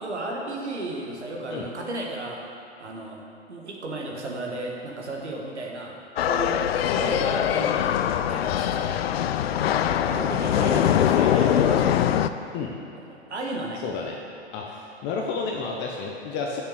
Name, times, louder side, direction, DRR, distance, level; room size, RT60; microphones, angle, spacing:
voice 1, 0.0-2.4 2.8-3.2 3.5-6.6 6.9-8.0 8.3-8.9 9.6-12.0 12.9-13.8, right 2 dB, 80° right, -1 dB, 1.7 m, -34 dB
sound 1, 6.2-12.3, left 10 dB, 65° left, 0.5 m, -22 dB
voice 2, 13.8-14.2 14.5-16.6, left 4 dB, 35° left, 0 dB, 0.9 m, -31 dB
6.8 x 6.7 x 6.6 m, 2.7 s
figure-of-eight pair, 100°, 34 cm